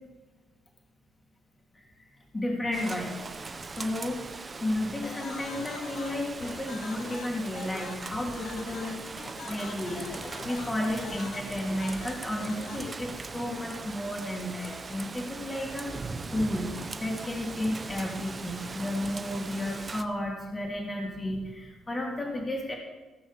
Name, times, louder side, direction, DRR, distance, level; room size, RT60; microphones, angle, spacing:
voice 1, 2.3-3.3 3.8-4.2 4.6-10.1 10.4-16.0 16.3-16.7 17.0-22.8, left 1 dB, 20° left, -1 dB, 3.1 m, -32 dB
Rain, 2.7-20.0, right 4 dB, 30° right, 1.0 m, -40 dB
sound 1, 5.0-12.9, left 6 dB, 70° left, 1.2 m, -43 dB
17.0 x 6.1 x 7.4 m, 1.3 s
cardioid pair, 90°, 0 cm